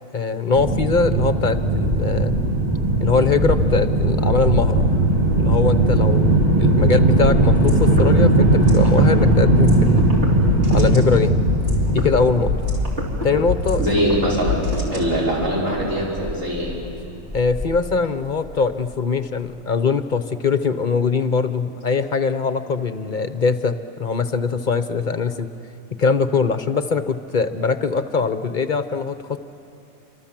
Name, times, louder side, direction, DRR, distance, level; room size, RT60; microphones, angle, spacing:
voice 1, 0.1-2.3 3.0-4.9 5.3-10.1 10.7-11.3 11.9-12.5 13.2-13.9 17.3-25.5 26.0-29.4, left 5 dB, 40° left, 10 dB, 0.9 m, -22 dB
sound 1, 0.6-17.9, right 2 dB, 30° right, 1.8 m, -19 dB
sound 2, 7.5-15.5, left 3 dB, 50° right, 3.8 m, -26 dB
voice 2, 13.8-14.6 14.9-16.7, equal, 70° right, -6 dB, 5.9 m, -22 dB
28.5 x 25.5 x 7.5 m, 2.8 s
omnidirectional pair, 1.4 m